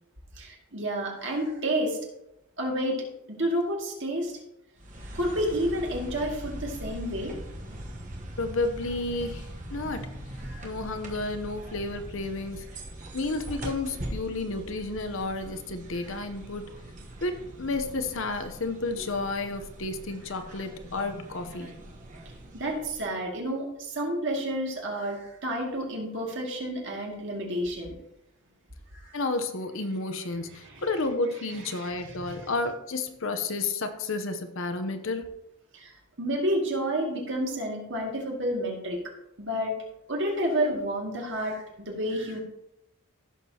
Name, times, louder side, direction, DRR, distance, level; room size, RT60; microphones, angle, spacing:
voice 1, 0.4-2.0 2.6-3.0 3.3-4.3 5.1-7.3 10.4-10.7 22.5-27.9 28.9-29.1 30.6-30.8 31.7-32.5 35.7-39.0 39.4-39.7 40.1-42.4, equal, 55° right, -1 dB, 2.2 m, -30 dB
sound 1, 4.8-23.2, right 1 dB, 35° right, 1.1 m, -41 dB
voice 2, 8.4-10.1 10.6-12.6 13.1-16.7 17.2-21.8 29.1-35.2, left 3 dB, 60° left, 8 dB, 0.8 m, -31 dB
15.5 x 6.7 x 2.9 m, 0.86 s
head